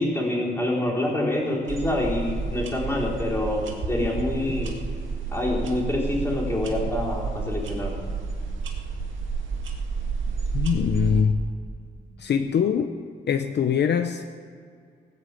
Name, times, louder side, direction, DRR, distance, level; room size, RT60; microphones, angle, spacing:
voice 1, 0.0-4.7 5.3-7.9 11.9-12.0, left 1 dB, 10° left, -5 dB, 3.9 m, -26 dB
sound 1, 1.7-11.2, right 4 dB, 90° right, 1.9 m, -30 dB
voice 2, 10.5-11.4 12.2-12.9 13.3-14.2, left 7 dB, 60° left, 6 dB, 0.7 m, -23 dB
18.0 x 7.1 x 8.3 m, 2.2 s
wide cardioid pair, 150°, 19 cm